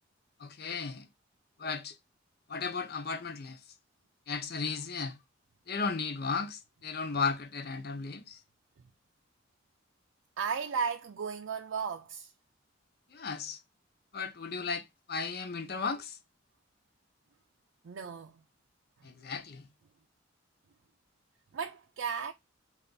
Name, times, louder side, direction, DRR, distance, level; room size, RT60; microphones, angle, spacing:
voice 1, 0.4-1.1 1.6-2.0 2.5-3.6 4.3-5.2 5.7-8.4 13.1-13.6 14.1-16.2 19.0-19.7, left 5 dB, 55° left, 0.7 m, -35 dB
voice 2, 10.4-12.3 17.8-18.4 21.5-22.3, right 6 dB, 85° right, 0.5 m, -35 dB
3.3 x 2.5 x 3.8 m
head